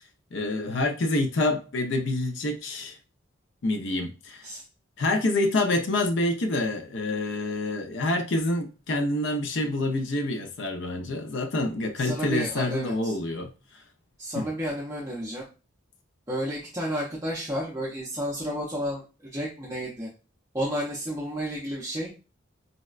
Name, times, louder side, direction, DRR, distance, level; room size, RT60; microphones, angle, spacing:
voice 1, 0.3-3.0 3.6-4.4 5.0-13.5 14.3-14.5, left 2 dB, 65° left, 0.5 m, -27 dB
voice 2, 12.0-13.2 14.2-15.4 16.3-19.0 19.3-20.1 20.5-22.1, equal, 15° right, 0.5 m, -31 dB
4.0 x 2.1 x 2.4 m
head